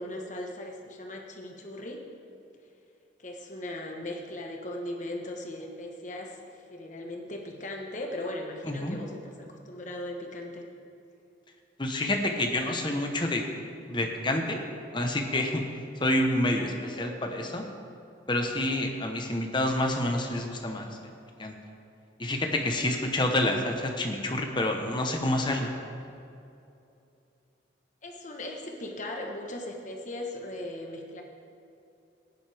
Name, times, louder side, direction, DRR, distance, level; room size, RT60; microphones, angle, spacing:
voice 1, 0.0-2.0 3.2-6.4 6.7-10.6 16.9-17.3 28.0-31.2, left 1 dB, 40° left, 1 dB, 1.2 m, -38 dB
voice 2, 8.6-9.0 11.8-13.4 13.9-14.7 14.9-15.6 16.0-17.6 18.3-21.1 21.4-21.5 22.2-25.7, left 1 dB, 25° left, 3 dB, 1.0 m, -28 dB
16.0 x 10.5 x 3.5 m, 2.7 s
head